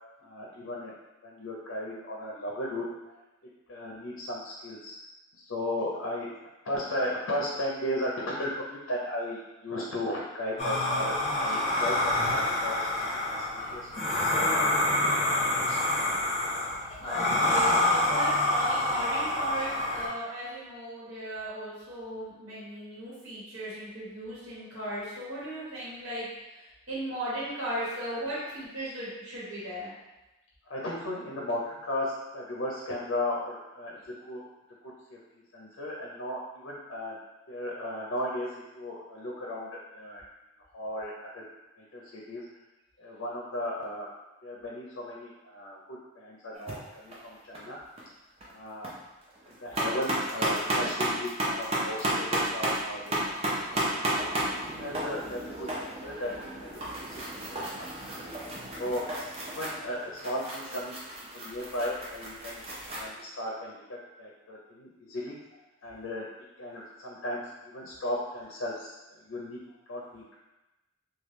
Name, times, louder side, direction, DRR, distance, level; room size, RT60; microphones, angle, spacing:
voice 1, 0.2-0.9 1.2-2.9 3.7-5.0 5.4-6.3 6.7-12.9 13.2-13.4 13.7-14.8 15.4-15.8 28.0-28.3 28.8-28.9 30.7-34.4 35.1-35.2 35.5-37.2 37.5-38.5 38.7-40.2 40.7-41.4 41.8-42.4 43.0-44.1 44.4-47.8 48.5-48.9 49.5-53.3 53.7-53.9 54.4-56.3 56.6-57.2 57.5-57.9 58.8-59.0 59.4-61.0 61.3-65.4 65.8-66.3 66.6-69.0 69.2-69.6 69.9-70.4, left 1 dB, 65° left, -3 dB, 0.5 m, -35 dB
sound 1, 10.6-20.1, left 1 dB, 30° left, 0.7 m, -27 dB
voice 2, 17.0-29.9 57.8-58.2, right 1 dB, 80° right, -8 dB, 1.2 m, -37 dB
sound 2, 46.5-46.7 47.1-47.6 48.0-48.1 48.4-48.9 49.3-63.0, right 1 dB, 30° right, 0.6 m, -33 dB
3.2 x 2.3 x 3.0 m, 1.0 s
head